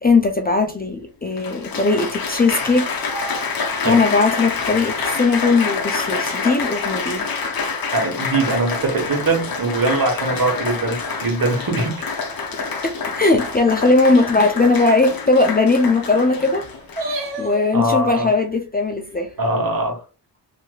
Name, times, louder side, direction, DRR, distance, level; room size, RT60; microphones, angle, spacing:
voice 1, 0.0-2.9 3.8-7.3 12.8-16.6 17.4-19.3, left 3 dB, 20° left, 4 dB, 0.4 m, -18 dB
Applause, 0.6-0.7 1.4-17.3 18.0-18.4, left 4 dB, 55° left, 0.8 m, -27 dB
voice 2, 7.9-12.1 17.7-18.3 19.4-20.0, right 2 dB, 50° right, 1 dB, 1.3 m, -21 dB
sound 1, 10.0-13.1 13.6-13.7 13.9-14.0 14.2-18.2, right 1 dB, 90° right, 1.2 m, -36 dB
3.0 x 2.8 x 2.3 m, 0.33 s
wide cardioid pair, 80°, 43 cm